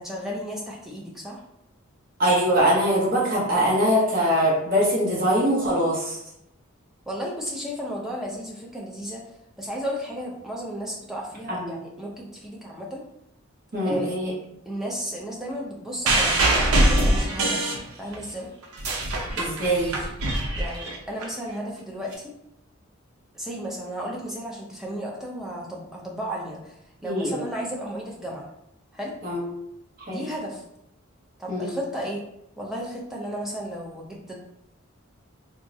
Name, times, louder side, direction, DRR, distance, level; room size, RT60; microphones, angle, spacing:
voice 1, 0.0-1.4 7.1-9.2 9.6-13.0 13.8-14.4 14.7-18.5 20.6-22.3 23.3-28.5 28.9-29.2 30.1-30.6 31.4-32.2 32.6-34.4, equal, ahead, -3 dB, 0.4 m, -34 dB
voice 2, 2.2-6.2 11.5-11.8 13.7-14.3 19.4-20.0 27.0-27.4 29.2-29.4 30.0-30.2 31.5-31.7, equal, 40° right, -4 dB, 0.8 m, -23 dB
sound 1, 16.1-18.3 18.6-21.2 22.1-22.2, right 1 dB, 85° right, 0.6 m, -23 dB
3.5 x 2.0 x 2.6 m, 0.81 s
head